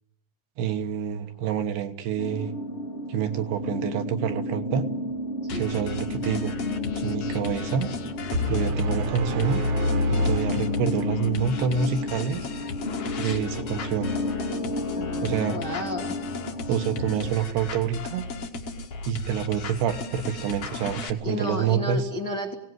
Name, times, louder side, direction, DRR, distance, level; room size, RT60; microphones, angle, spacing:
voice 1, 0.6-2.5 3.1-4.9 5.5-6.5 7.0-7.9 8.5-9.6 10.1-12.5 13.2-14.1 15.2-15.6 16.7-18.3 19.1-22.1, right 8 dB, 70° right, 7 dB, 3.1 m, -27 dB
sound 1, 2.2-17.3, left 3 dB, 25° left, 1.4 m, -32 dB
sound 2, 5.5-21.1, left 3 dB, 60° left, 1.6 m, -36 dB
sound 3, 8.3-11.4, left 2 dB, 55° right, 2.2 m, -27 dB
voice 2, 14.9-16.2 21.2-22.5, left 2 dB, 75° left, 2 dB, 0.9 m, -32 dB
25.0 x 18.0 x 9.4 m, 0.78 s
omnidirectional pair, 5.2 m